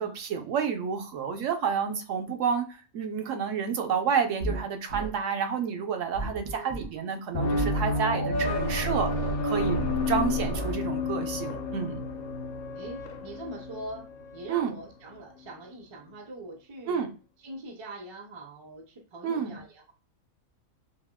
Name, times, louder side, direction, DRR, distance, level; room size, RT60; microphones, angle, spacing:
voice 1, 0.0-2.7 2.9-9.1 9.4-9.8 10.1-12.0 14.5-14.7 16.9-17.1 19.2-19.6, right 6 dB, 70° right, 5 dB, 0.9 m, -29 dB
sound 1, 4.4-4.6 4.9-5.1 6.1-6.9 7.5-8.0 8.3-10.8, right 1 dB, 90° right, 1.2 m, -34 dB
voice 2, 6.4-6.8 7.9-8.6 12.7-14.1 14.3-17.0 17.4-19.9, right 2 dB, 45° right, 3 dB, 0.3 m, -42 dB
sound 2, 7.3-14.7, left 2 dB, 60° left, 0.6 m, -31 dB
4.2 x 2.1 x 2.2 m, 0.35 s
omnidirectional pair, 1.4 m